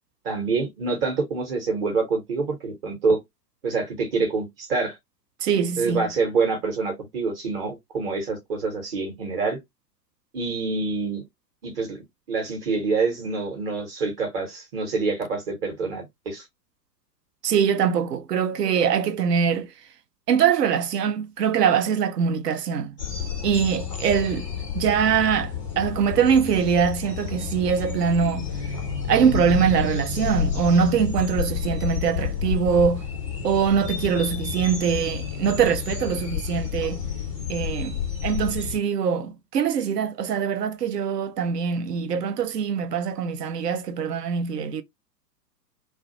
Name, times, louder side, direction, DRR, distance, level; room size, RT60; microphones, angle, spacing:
voice 1, 0.2-3.2 3.6-5.0 5.8-9.6 10.3-11.2 11.6-12.0 12.3-16.4, right 4 dB, 35° right, 0.9 m, -26 dB
voice 2, 5.4-6.1 17.4-19.7 20.3-22.9 23.4-24.5 24.7-28.5 29.1-33.0 33.4-37.0 37.5-44.8, right 7 dB, 70° right, 0.6 m, -23 dB
sound 1, 23.0-38.8, left 7 dB, 25° left, 0.3 m, -30 dB
2.3 x 2.1 x 2.6 m
figure-of-eight pair, 100°, 50 cm